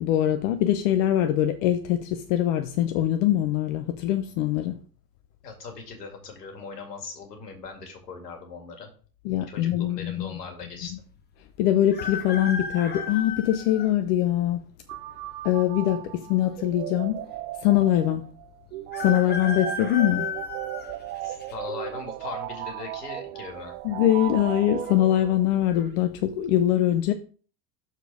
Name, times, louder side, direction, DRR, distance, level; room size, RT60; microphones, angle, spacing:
voice 1, 0.0-4.8 9.2-10.3 11.6-14.6 15.4-17.2 17.6-18.2 19.0-20.3 23.8-27.1, left 12 dB, 50° left, 0.8 m, -23 dB
voice 2, 5.4-8.9 9.5-11.0 21.2-23.7, left 4 dB, 75° left, 2.4 m, -39 dB
sound 1, 11.9-13.9 14.6-14.7 15.8-16.4 16.7-16.8 17.0-17.1 18.9-21.5 22.1-22.5 23.6-24.0 24.2-24.3 24.8-25.2 25.7-25.9, left 5 dB, 20° left, 1.1 m, -34 dB
sound 2, 14.9-25.6, right 14 dB, 55° right, 0.7 m, -36 dB
6.8 x 4.6 x 4.8 m
hypercardioid pair, 90°, 48 cm